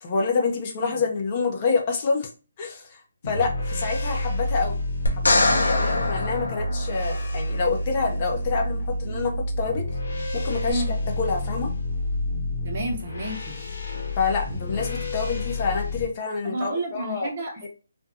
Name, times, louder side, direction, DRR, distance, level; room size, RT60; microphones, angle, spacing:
voice 1, 0.0-2.3 2.6-3.0 3.2-4.8 5.1-9.9 10.3-10.8 11.2-11.7 14.2-17.3 17.6-17.7, left 4 dB, 35° left, 1 dB, 0.6 m, -27 dB
sound 1, 3.2-16.1, left 1 dB, 60° left, 0.9 m, -29 dB
sound 2, 5.1-7.4 10.7-10.8, left 2 dB, 80° left, 0.7 m, -24 dB
voice 2, 12.6-13.5 16.4-17.7, right 1 dB, 45° right, 0 dB, 0.9 m, -31 dB
2.6 x 2.2 x 2.6 m, 0.34 s
figure-of-eight pair, 145°, 0 cm